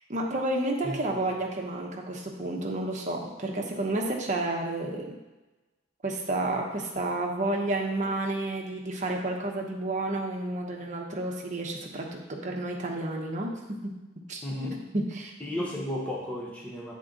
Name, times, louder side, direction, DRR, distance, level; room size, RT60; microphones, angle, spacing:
voice 1, 0.1-5.1 6.0-13.5 13.8-13.9 14.3-14.4 14.9-15.3, right 2 dB, 40° right, 0 dB, 0.9 m, -30 dB
voice 2, 0.8-1.3 14.4-14.9 15.4-16.9, left 1 dB, 5° left, -5 dB, 0.8 m, -34 dB
7.5 x 3.7 x 3.8 m, 1.1 s
head